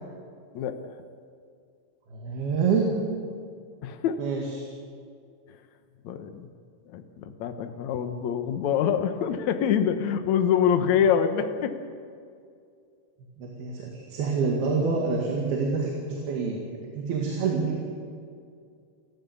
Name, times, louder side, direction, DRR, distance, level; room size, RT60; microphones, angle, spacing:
voice 1, 2.1-3.0 4.2-4.7 13.4-17.8, right 5 dB, 80° right, -1 dB, 4.1 m, -27 dB
voice 2, 3.8-4.2 6.0-6.5 6.9-11.8, left 8 dB, 60° left, 8 dB, 2.1 m, -25 dB
28.0 x 14.5 x 7.1 m, 2.3 s
omnidirectional pair, 4.3 m